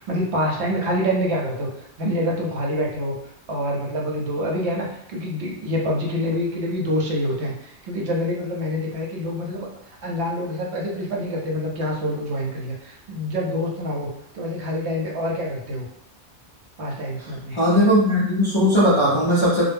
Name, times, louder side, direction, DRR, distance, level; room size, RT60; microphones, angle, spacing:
voice 1, 0.0-3.2 3.5-9.7 10.0-14.1 14.3-15.9 16.8-17.6, equal, 75° right, -2 dB, 0.9 m, -26 dB
voice 2, 17.5-19.6, equal, 45° left, -8 dB, 0.4 m, -18 dB
2.1 x 2.0 x 3.3 m, 0.76 s
omnidirectional pair, 1.2 m